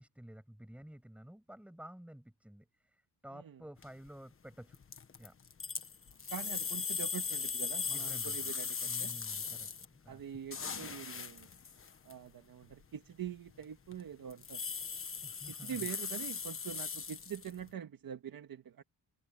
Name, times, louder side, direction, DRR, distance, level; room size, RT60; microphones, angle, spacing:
voice 1, 0.0-4.8 5.2-5.3 7.9-8.5 8.8-10.2 15.2-15.8, equal, 5° right, 7.4 m, -52 dB
sound 1, 3.8-4.1 4.7-9.8 10.2-12.1 12.7-12.8 13.3-13.6 13.9-14.0 14.3-17.7, left 6 dB, 30° left, 1.4 m, -39 dB
voice 2, 6.3-9.1 10.1-11.5 12.1-14.6 15.5-18.8, right 8 dB, 55° right, 1.8 m, -44 dB
wide cardioid pair, 155°, 42 cm